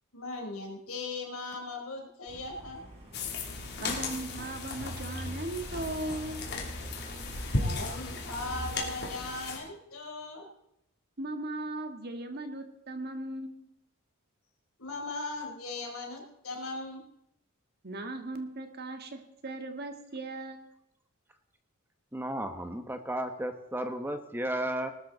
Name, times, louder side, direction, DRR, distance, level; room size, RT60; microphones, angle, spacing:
voice 1, 0.1-2.8 7.6-10.5 14.8-17.0, left 2 dB, 85° left, 1 dB, 3.9 m, -38 dB
Truck, 2.3-8.7, right 1 dB, 30° right, 5.7 m, -44 dB
sound 1, 3.1-9.6, left 3 dB, 50° left, 3.0 m, -36 dB
voice 2, 3.8-6.4 11.2-13.7 17.8-20.7, right 2 dB, 45° right, 6 dB, 1.7 m, -38 dB
voice 3, 22.1-24.9, right 1 dB, 10° right, 7 dB, 1.1 m, -33 dB
19.5 x 12.5 x 4.0 m, 0.79 s
head